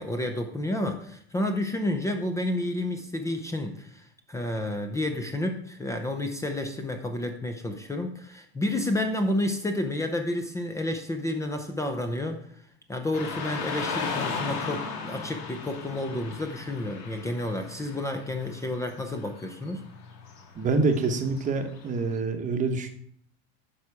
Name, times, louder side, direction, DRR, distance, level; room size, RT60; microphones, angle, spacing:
voice 1, 0.0-12.4 12.9-19.8, left 1 dB, 10° left, 5 dB, 0.6 m, -30 dB
Car passing by / Traffic noise roadway noise, 13.1-22.2, left 5 dB, 70° left, 2.3 m, -37 dB
voice 2, 20.6-22.9, right 3 dB, 20° right, 6 dB, 1.0 m, -26 dB
9.7 x 5.9 x 4.7 m, 0.63 s
supercardioid pair, 155°, 33 cm